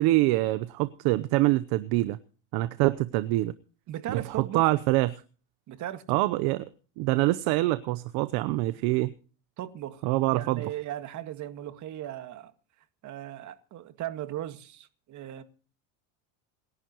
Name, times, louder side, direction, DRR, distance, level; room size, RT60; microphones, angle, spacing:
voice 1, 0.0-2.2 2.5-3.5 4.1-5.2 6.1-6.6 7.0-9.1 10.0-10.6, right 18 dB, 60° right, 0.9 m, -25 dB
voice 2, 3.9-4.7 5.7-6.4 9.6-12.5 13.0-15.4, right 12 dB, 45° right, 2.0 m, -37 dB
27.0 x 11.0 x 3.0 m
supercardioid pair, 120°, 42 cm